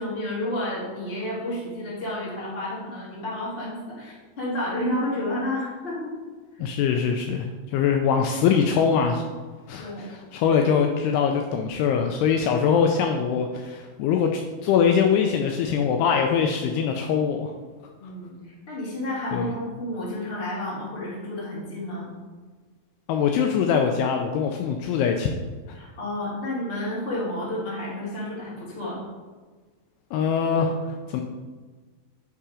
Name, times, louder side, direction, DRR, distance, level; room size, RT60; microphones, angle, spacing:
voice 1, 0.0-6.1 6.5-6.6 9.8-10.1 18.0-22.1 25.7-29.0, left 1 dB, 25° left, -7 dB, 1.3 m, -31 dB
voice 2, 6.6-9.2 9.7-17.5 19.3-19.5 23.1-25.4 30.1-31.2, left 6 dB, 85° left, 3 dB, 2.4 m, -23 dB
8.4 x 3.7 x 4.8 m, 1.4 s
omnidirectional pair, 5.0 m